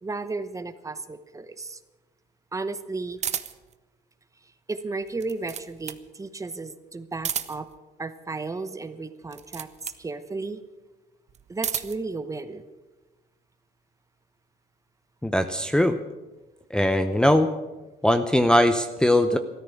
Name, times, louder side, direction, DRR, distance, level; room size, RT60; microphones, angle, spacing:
voice 1, 0.0-1.8 2.5-3.2 4.7-7.7 8.0-9.7 10.0-10.6 11.5-12.7, right 3 dB, 20° right, 12 dB, 0.9 m, -34 dB
sound 1, 3.2-3.7 5.0-6.1 7.1-7.8 9.2-10.1 11.3-12.1, right 8 dB, 40° right, 0.8 m, -32 dB
voice 2, 15.2-16.0 16.7-17.5 18.0-19.4, left 1 dB, 5° left, 7 dB, 0.7 m, -20 dB
13.5 x 13.5 x 7.1 m, 1.2 s
cardioid pair, 110°, 17 cm